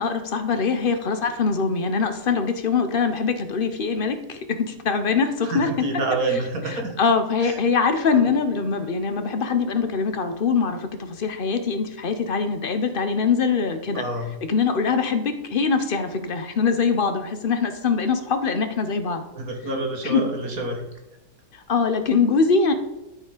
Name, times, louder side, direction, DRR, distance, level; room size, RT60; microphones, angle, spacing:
voice 1, 0.0-5.8 7.0-14.0 14.5-19.2 20.0-20.2 21.5-22.7, left 5 dB, 45° left, 8 dB, 0.7 m, -23 dB
voice 2, 5.4-6.9 7.4-7.6 8.1-8.2 13.9-14.3 19.3-20.8, right 2 dB, 60° right, 2 dB, 2.0 m, -27 dB
13.0 x 4.9 x 4.9 m, 0.97 s
omnidirectional pair, 1.8 m